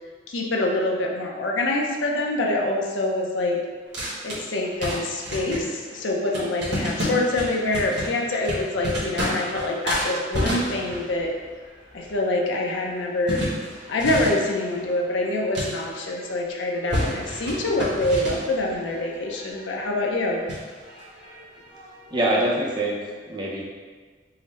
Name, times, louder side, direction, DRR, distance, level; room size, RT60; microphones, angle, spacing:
voice 1, 0.3-3.6 4.2-11.3 11.9-13.4 13.9-20.4, left 2 dB, 85° left, -1 dB, 0.5 m, -25 dB
sound 1, 3.9-16.4 16.7-22.4, equal, 65° right, 1.2 m, -32 dB
voice 2, 22.1-23.6, right 1 dB, 25° right, -3 dB, 0.5 m, -24 dB
3.8 x 2.1 x 4.0 m, 1.5 s
head